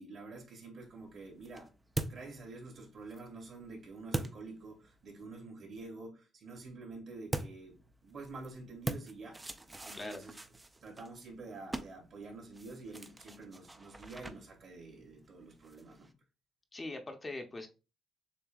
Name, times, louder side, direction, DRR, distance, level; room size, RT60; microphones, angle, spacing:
voice 1, 0.0-1.7 2.1-9.4 9.8-10.4 10.8-16.1, right 3 dB, 60° right, 2.4 m, -48 dB
sound 1, 0.9-5.2 7.3-16.1, right 2 dB, 20° right, 0.5 m, -44 dB
voice 2, 16.7-17.7, left 2 dB, 25° left, 0.7 m, -41 dB
6.9 x 2.7 x 2.4 m
cardioid pair, 90°, 0 cm